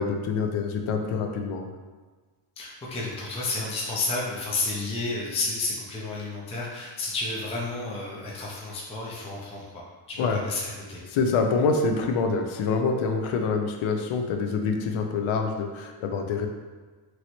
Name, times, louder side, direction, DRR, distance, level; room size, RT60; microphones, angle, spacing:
voice 1, 0.0-1.7 10.2-10.4 11.1-16.5, left 4 dB, 85° left, 4 dB, 0.6 m, -26 dB
voice 2, 2.6-9.7 10.1-11.0, left 3 dB, 15° left, -4 dB, 0.4 m, -31 dB
3.0 x 2.7 x 2.9 m, 1.4 s
cardioid pair, 130°, 47 cm